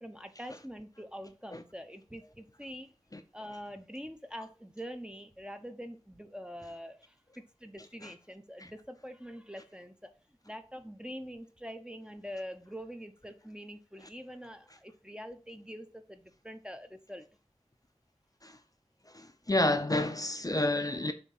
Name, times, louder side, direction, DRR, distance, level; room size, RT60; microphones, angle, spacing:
voice 1, 0.0-2.9 3.3-10.1 10.4-17.3, equal, 5° right, 0.7 m, -45 dB
voice 2, 19.1-21.1, left 1 dB, 30° left, 0.6 m, -30 dB
7.0 x 2.8 x 5.4 m
wide cardioid pair, 55°, 12 cm